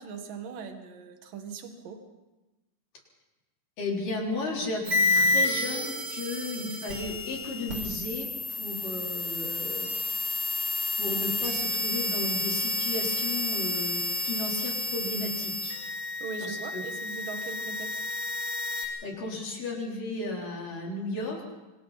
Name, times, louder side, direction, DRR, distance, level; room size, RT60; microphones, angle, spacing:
voice 1, 0.0-2.0 16.2-17.9, right 5 dB, 65° right, 5 dB, 3.4 m, -40 dB
voice 2, 3.8-9.9 10.9-15.8 16.4-16.8 18.7-21.5, left 2 dB, 60° left, -2 dB, 5.6 m, -34 dB
sound 1, 4.8-18.8, left 2 dB, 35° right, 6.5 m, -30 dB
27.5 x 25.5 x 4.3 m, 1.1 s
omnidirectional pair, 4.3 m